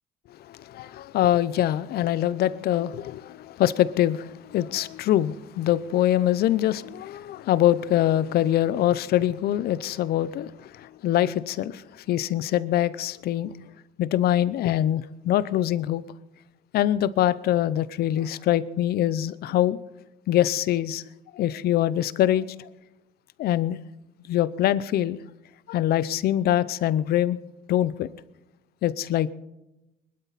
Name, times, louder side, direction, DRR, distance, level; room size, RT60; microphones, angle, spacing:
voice 1, 0.3-13.5 14.0-16.0 16.7-19.8 20.3-21.1 21.3-22.7 23.4-23.8 24.3-25.2 25.7-27.4 27.7-28.1 28.8-29.3, left 12 dB, 65° left, 0.7 m, -24 dB
22.0 x 12.0 x 4.1 m
cardioid pair, 110°, 17 cm